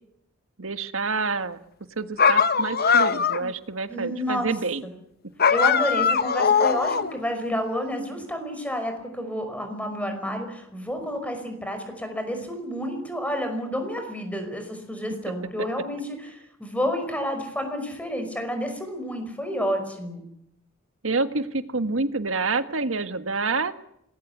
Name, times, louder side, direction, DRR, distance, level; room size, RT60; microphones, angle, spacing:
voice 1, 0.6-1.6 2.0-4.9 21.0-23.7, right 3 dB, 70° right, 10 dB, 1.6 m, -27 dB
sound 1, 2.2-3.5 5.4-7.2, left 6 dB, 45° left, 0.9 m, -21 dB
voice 2, 3.9-4.5 4.8-4.9 5.5-20.3, equal, 5° left, 6 dB, 5.4 m, -30 dB
26.5 x 20.0 x 8.2 m, 0.77 s
head